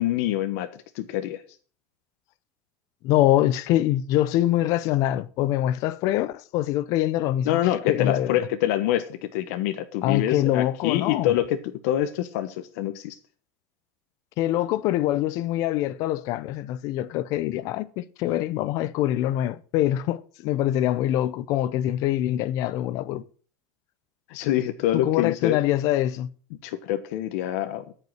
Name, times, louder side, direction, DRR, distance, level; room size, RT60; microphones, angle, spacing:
voice 1, 0.0-1.4 7.4-13.2 24.3-25.6 26.6-27.8, left 12 dB, 65° left, 1.2 m, -26 dB
voice 2, 3.0-7.6 7.9-8.4 10.0-11.4 14.4-23.2 24.9-26.3, left 13 dB, 45° left, 0.7 m, -24 dB
13.5 x 5.7 x 7.9 m
cardioid pair, 175°, 8 cm